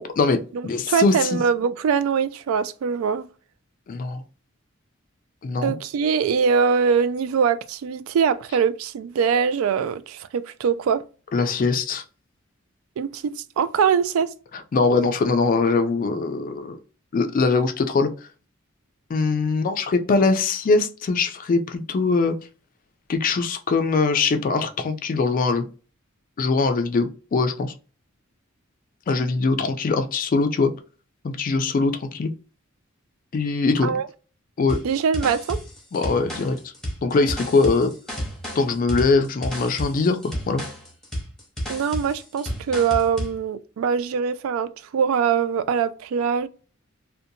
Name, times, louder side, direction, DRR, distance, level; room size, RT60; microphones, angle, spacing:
voice 1, 0.0-1.4 3.9-4.2 5.4-5.7 11.3-12.0 14.7-16.8 17.1-18.1 19.1-22.4 23.1-25.7 26.4-27.7 29.1-30.7 31.2-32.3 33.3-34.0 34.6-34.8 35.9-36.6 37.0-37.9 38.6-40.6, left 4 dB, 40° left, 0.3 m, -22 dB
voice 2, 0.5-3.3 5.6-11.0 13.0-14.3 33.8-34.1 34.8-35.6 41.7-46.5, right 6 dB, 80° right, 0.3 m, -23 dB
sound 1, 34.7-43.4, equal, 5° left, 0.8 m, -32 dB
2.6 x 2.2 x 2.7 m
head